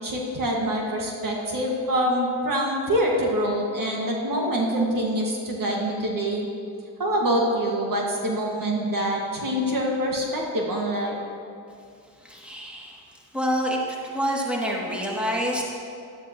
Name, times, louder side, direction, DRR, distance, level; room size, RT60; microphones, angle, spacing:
voice 1, 0.0-6.5 7.0-11.1, equal, 50° right, -1 dB, 1.8 m, -25 dB
voice 2, 12.2-13.0 13.3-13.8 14.0-15.6, equal, 5° right, -4 dB, 2.4 m, -27 dB
12.5 x 11.0 x 3.0 m, 2.5 s
cardioid pair, 65°, 42 cm